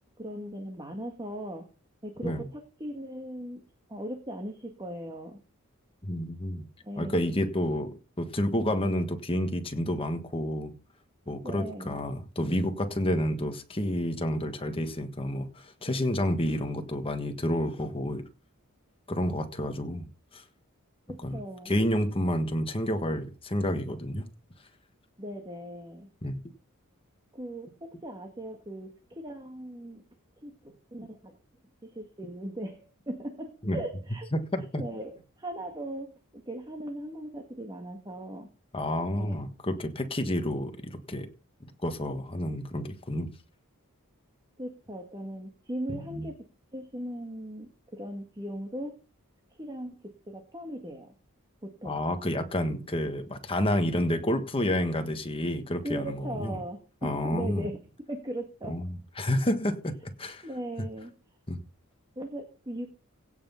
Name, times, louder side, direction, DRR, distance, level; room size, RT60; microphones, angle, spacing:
voice 1, 0.2-1.7 2.0-3.6 3.9-5.4 6.8-7.3 11.4-12.0 21.1-21.7 25.2-26.1 27.3-30.0 30.4-31.3 31.8-34.3 34.8-38.5 39.1-39.4 44.6-46.4 46.7-49.0 49.6-51.1 51.6-51.9 55.8-57.8 58.1-58.8 60.4-61.1 62.1-63.1, right 1 dB, 20° right, 1.7 m, -39 dB
voice 2, 6.0-6.6 7.0-10.8 11.3-18.3 19.1-20.1 20.3-20.4 21.2-24.3 26.2-26.4 33.6-33.8 34.3-34.8 38.7-41.3 41.6-43.3 46.1-46.3 51.8-56.6 57.0-57.7 58.7-60.5 61.5-61.6, left 1 dB, 25° left, 1.5 m, -30 dB
16.5 x 5.9 x 5.7 m
head